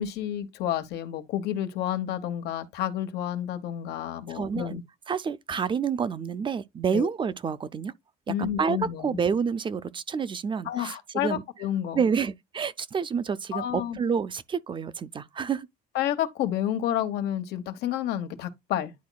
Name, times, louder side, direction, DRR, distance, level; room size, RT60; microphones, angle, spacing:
voice 1, 0.0-4.8 6.9-7.1 8.3-9.2 10.6-12.0 13.5-14.0 15.9-18.9, left 11 dB, 85° left, 1.0 m, -30 dB
voice 2, 4.3-4.8 5.1-7.9 8.4-11.4 11.9-15.7, right 6 dB, 30° right, 0.4 m, -28 dB
10.5 x 4.0 x 2.2 m
cardioid pair, 110°, 17 cm